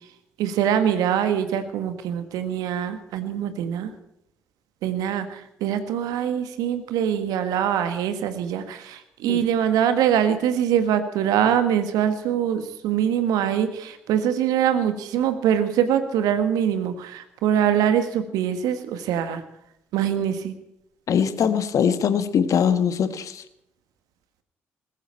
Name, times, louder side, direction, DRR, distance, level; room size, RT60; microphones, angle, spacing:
voice 1, 0.4-3.9 4.8-19.4 19.9-20.5, right 9 dB, 65° right, 10 dB, 1.7 m, -23 dB
voice 2, 21.1-23.4, left 7 dB, 55° left, 11 dB, 1.4 m, -22 dB
20.0 x 14.0 x 4.5 m, 0.79 s
figure-of-eight pair, 40°, 7 cm